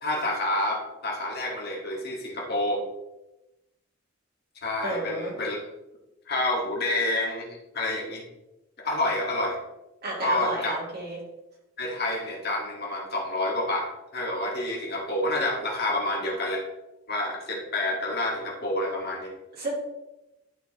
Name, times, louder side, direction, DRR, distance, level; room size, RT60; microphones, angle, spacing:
voice 1, 0.0-2.8 4.6-5.6 6.3-8.2 8.8-9.6 10.2-10.7 11.8-16.6 17.1-19.3, left 1 dB, 50° left, -1 dB, 1.7 m, -28 dB
voice 2, 4.8-5.3 10.0-11.2 19.6-19.7, right 1 dB, 50° right, -4 dB, 2.4 m, -31 dB
11.5 x 4.6 x 2.9 m, 0.96 s
head